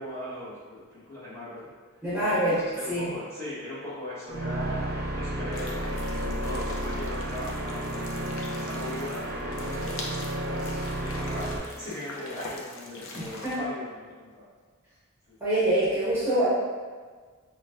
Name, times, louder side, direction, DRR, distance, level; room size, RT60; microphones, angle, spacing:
voice 1, 0.0-1.7 2.2-14.5 15.3-15.4, left 1 dB, 15° left, -11 dB, 1.2 m, -39 dB
voice 2, 2.0-2.6 2.9-3.1 13.1-13.6 15.4-16.5, right 1 dB, 10° right, -11 dB, 1.0 m, -25 dB
sound 1, 4.3-11.6, right 1 dB, 50° right, 0.6 m, -32 dB
sound 2, 5.5-13.6, left 2 dB, 80° left, 0.6 m, -43 dB
6.0 x 2.2 x 2.5 m, 1.5 s
head